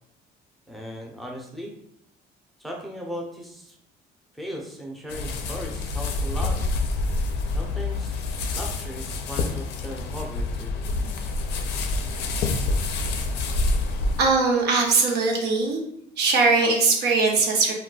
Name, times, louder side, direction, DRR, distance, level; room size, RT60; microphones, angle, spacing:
voice 1, 0.7-1.7 2.6-3.8 4.3-6.6 7.5-8.2 8.5-10.7, equal, ahead, -1 dB, 0.6 m, -37 dB
sound 1, 5.1-14.2, left 2 dB, 80° left, 0.4 m, -27 dB
voice 2, 14.2-15.8 16.2-17.7, right 3 dB, 75° right, 0 dB, 0.8 m, -20 dB
2.3 x 2.2 x 3.8 m, 0.73 s
cardioid pair, 110°, 17 cm